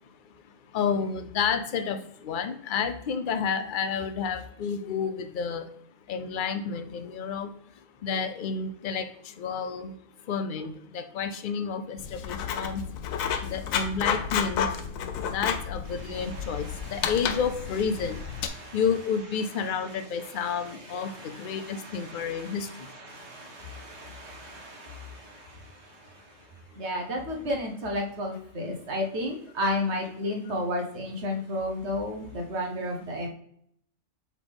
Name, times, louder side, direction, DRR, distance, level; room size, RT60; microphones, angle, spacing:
voice 1, 0.0-5.7 6.1-14.9 15.2-18.3 18.7-22.9, left 6 dB, 55° left, 9 dB, 0.6 m, -31 dB
Writing, 12.0-18.5, left 7 dB, 85° left, 1.1 m, -31 dB
voice 2, 15.9-17.1 18.3-18.8 19.6-26.5 26.7-33.3, left 1 dB, 55° right, 1 dB, 1.4 m, -34 dB
7.5 x 4.0 x 3.5 m, 0.70 s
omnidirectional pair, 1.4 m